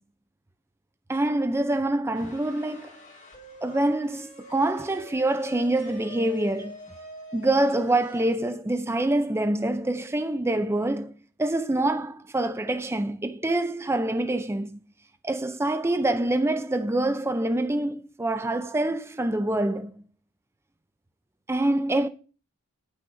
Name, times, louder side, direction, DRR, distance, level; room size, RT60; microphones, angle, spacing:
voice 1, 1.1-3.0 3.6-6.8 7.3-11.1 11.4-14.8 15.2-20.0 21.5-22.1, right 1 dB, 10° right, 0.5 m, -25 dB
sound 1, 2.1-8.3, left 1 dB, 35° left, 2.8 m, -45 dB
8.9 x 6.3 x 5.6 m
head